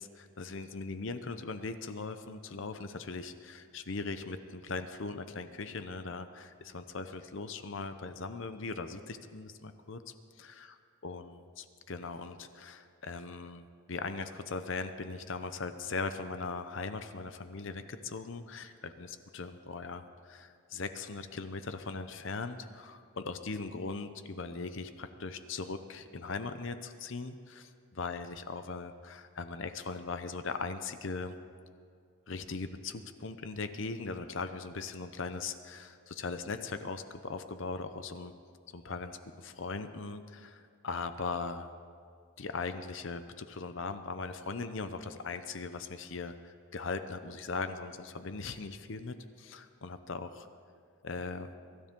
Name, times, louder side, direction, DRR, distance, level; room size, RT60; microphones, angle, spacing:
voice 1, 0.0-10.7 11.0-31.3 32.3-38.3 38.7-41.7 42.4-50.5 51.0-51.5, left 4 dB, 55° left, 10 dB, 0.7 m, -39 dB
23.0 x 13.0 x 3.7 m, 2.3 s
head